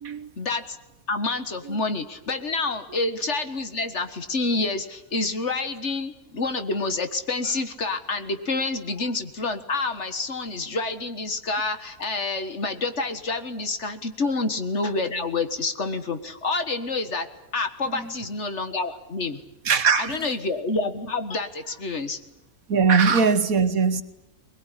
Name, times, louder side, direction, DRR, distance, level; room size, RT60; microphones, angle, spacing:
voice 1, 0.4-0.8 1.1-17.3 17.5-19.4 20.0-22.2, left 3 dB, 50° left, 9 dB, 1.8 m, -28 dB
voice 2, 19.6-20.3 22.7-24.0, right 5 dB, 65° right, 11 dB, 1.6 m, -21 dB
22.5 x 21.0 x 9.9 m, 0.92 s
omnidirectional pair, 1.6 m